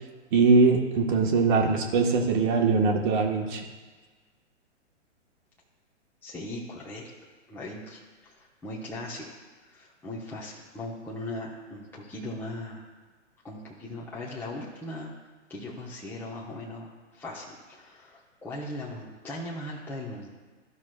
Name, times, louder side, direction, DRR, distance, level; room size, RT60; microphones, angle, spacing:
voice 1, 0.3-3.6, right 4 dB, 40° right, 2 dB, 1.3 m, -22 dB
voice 2, 6.2-7.1 7.5-9.4 9.6-12.9 13.4-15.1 15.5-20.4, left 1 dB, 5° left, -5 dB, 0.9 m, -39 dB
13.5 x 5.9 x 2.2 m, 1.4 s
hypercardioid pair, 125°, 37 cm